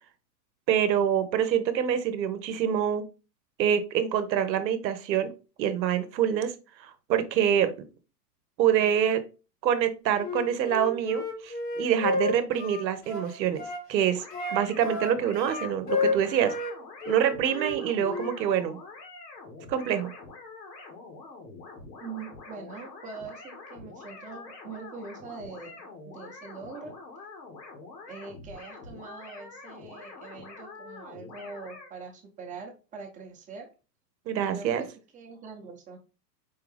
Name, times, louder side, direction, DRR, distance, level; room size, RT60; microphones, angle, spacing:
voice 1, 0.7-3.0 3.6-5.3 5.6-6.5 6.8-7.7 8.6-9.2 9.6-13.6 13.9-14.2 14.5-16.5 17.1-18.8 19.7-20.1 34.3-34.8, right 9 dB, 90° right, 11 dB, 0.8 m, -26 dB
Wind instrument woodwind instrument, 10.2-13.8 14.3-16.8 17.0-18.3, left 3 dB, 20° left, 0.8 m, -31 dB
sound 1, 14.1-31.9, left 3 dB, 80° left, 1.6 m, -46 dB
voice 2, 22.0-26.9 28.1-33.7 34.4-36.0, right 4 dB, 15° right, 1 dB, 0.6 m, -43 dB
4.5 x 2.4 x 3.2 m, 0.32 s
hypercardioid pair, 135°, 50 cm